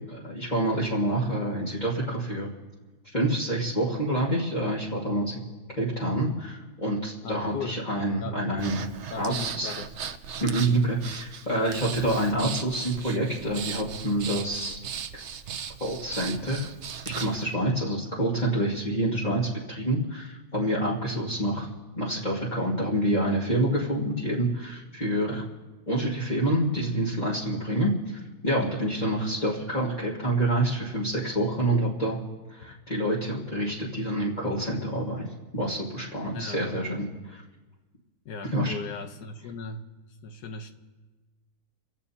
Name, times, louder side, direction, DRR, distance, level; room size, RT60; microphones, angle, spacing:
voice 1, 0.1-2.5 3.1-5.4 5.8-8.9 9.2-9.7 10.4-14.8 15.8-16.7 17.0-21.7 22.0-25.4 25.9-32.2 32.5-35.3 35.5-37.4 38.5-38.7, right 1 dB, 30° left, -7 dB, 2.1 m, -27 dB
voice 2, 7.2-7.8 8.2-8.4 9.1-9.9 21.1-21.5 29.0-29.4 32.7-32.8 36.3-36.6 38.2-39.8 40.2-40.7, left 4 dB, 80° left, 6 dB, 1.5 m, -38 dB
Breathing, 8.6-17.4, right 7 dB, 55° right, 0.9 m, -37 dB
29.5 x 16.0 x 2.9 m, 1.2 s
omnidirectional pair, 1.7 m